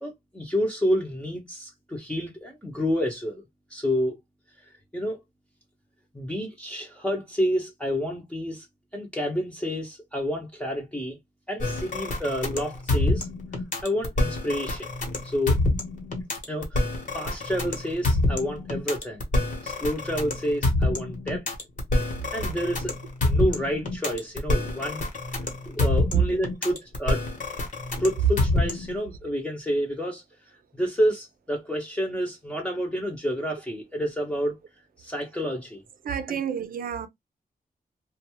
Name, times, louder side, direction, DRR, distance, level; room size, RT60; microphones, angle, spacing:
voice 1, 0.0-3.4 3.7-4.2 4.9-5.2 6.1-8.7 8.9-11.2 11.5-13.3 13.8-14.9 15.2-15.6 16.5-16.9 17.1-19.2 19.6-21.4 22.3-22.9 23.2-25.0 25.7-27.2 28.0-30.2 30.7-34.5 35.0-35.8 36.3-36.4, equal, 5° left, 0.7 m, -29 dB
sound 1, 11.6-29.0, left 2 dB, 55° left, 1.1 m, -26 dB
voice 2, 36.0-37.1, right 7 dB, 70° right, 0.5 m, -27 dB
2.5 x 2.2 x 2.9 m
wide cardioid pair, 120°, 15 cm